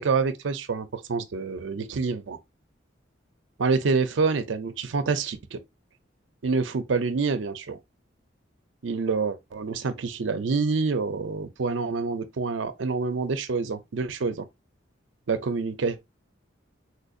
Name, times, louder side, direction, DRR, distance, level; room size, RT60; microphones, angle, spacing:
voice 1, 0.0-2.4 3.6-5.6 6.4-7.8 8.8-14.4 15.3-16.1, right 4 dB, 80° right, 0.5 m, -27 dB
4.3 x 2.6 x 2.4 m
head